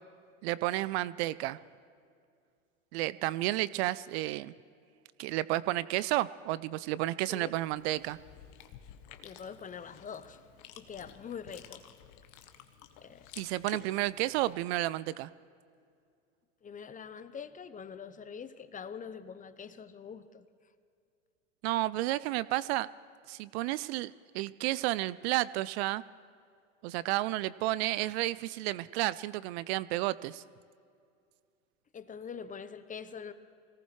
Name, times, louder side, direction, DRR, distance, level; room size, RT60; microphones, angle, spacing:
voice 1, 0.4-1.6 2.9-4.5 5.2-8.2 13.4-15.3 21.6-22.9 23.3-26.0 26.8-30.4, right 17 dB, 55° right, 19 dB, 0.5 m, -31 dB
Chewing mastication, 7.6-14.5, left 10 dB, 55° left, 1.3 m, -52 dB
voice 2, 9.2-10.4 10.8-11.8 13.0-13.3 16.6-20.4 31.9-33.3, left 6 dB, 20° left, 12 dB, 0.8 m, -44 dB
24.5 x 18.0 x 3.2 m, 2.4 s
hypercardioid pair, 90°, 38 cm